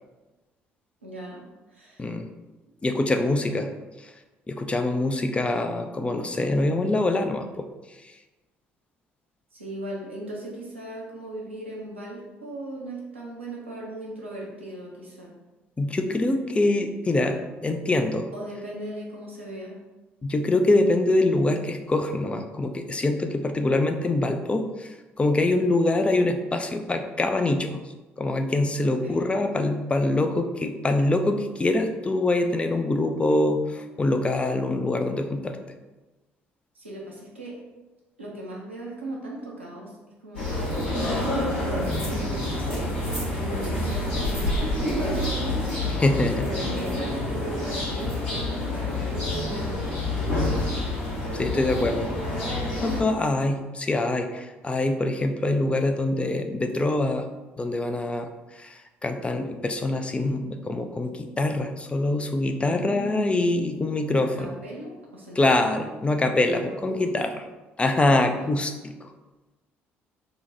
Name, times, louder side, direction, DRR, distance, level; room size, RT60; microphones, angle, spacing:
voice 1, 1.0-1.4 1.7-2.0 9.5-15.3 18.3-19.7 28.8-29.2 36.7-37.6 38.2-39.9 40.2-40.8 41.7-42.9 43.3-45.5 46.1-50.6 62.6-63.2 64.2-66.2 66.5-67.0 68.2-68.5, right 1 dB, 85° right, -4 dB, 0.5 m, -38 dB
voice 2, 2.8-3.7 4.5-7.7 15.8-18.3 20.2-24.9 25.2-27.8 28.2-35.6 45.9-46.5 51.3-52.1 52.4-52.5 52.8-57.3 57.6-58.3 58.6-64.6 65.4-67.3 67.8-69.1, left 2 dB, 20° left, 6 dB, 0.3 m, -24 dB
sound 1, 40.3-53.0, left 1 dB, 80° left, 0.9 m, -27 dB
2.7 x 2.1 x 3.9 m, 1.1 s
figure-of-eight pair, 50°, 6 cm